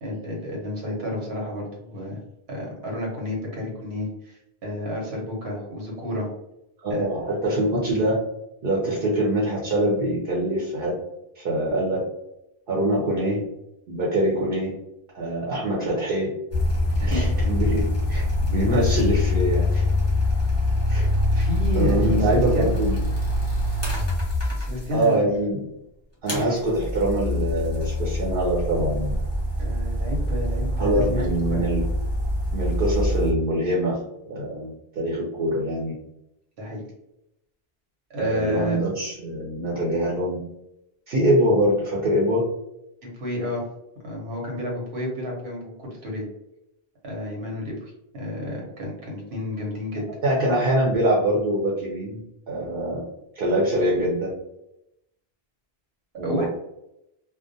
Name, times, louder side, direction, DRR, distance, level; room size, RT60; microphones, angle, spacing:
voice 1, 0.0-2.2 2.5-6.3 6.9-7.1 16.9-17.2 21.3-22.7 24.4-25.3 29.6-31.6 36.6-36.8 38.1-38.8 43.0-43.7 44.0-46.3 47.0-50.0 56.2-56.5, left 1 dB, 85° right, -2 dB, 1.0 m, -30 dB
voice 2, 6.8-8.2 8.6-11.0 11.3-12.0 12.7-13.4 13.9-14.8 15.1-16.4 17.0-19.8 20.9-21.1 21.7-23.0 24.9-25.6 26.2-29.1 30.8-31.8 32.5-34.0 34.3-35.9 38.2-40.4 41.1-42.4 50.2-52.2 52.5-53.0 53.3-54.3 56.2-56.5, right 1 dB, 65° right, -4 dB, 0.8 m, -24 dB
sound 1, 16.5-25.1 26.3-33.3, left 1 dB, 15° left, 0.7 m, -24 dB
2.2 x 2.1 x 2.6 m, 0.85 s
omnidirectional pair, 1.1 m